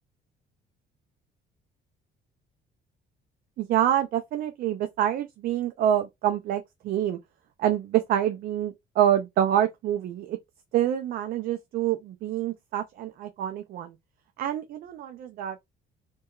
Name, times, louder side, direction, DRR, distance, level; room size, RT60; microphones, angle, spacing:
voice 1, 3.6-7.2 7.6-10.4 10.7-13.9 14.4-15.6, right 11 dB, 60° right, 0.4 m, -26 dB
2.7 x 2.2 x 2.3 m
cardioid pair, 110°, 17 cm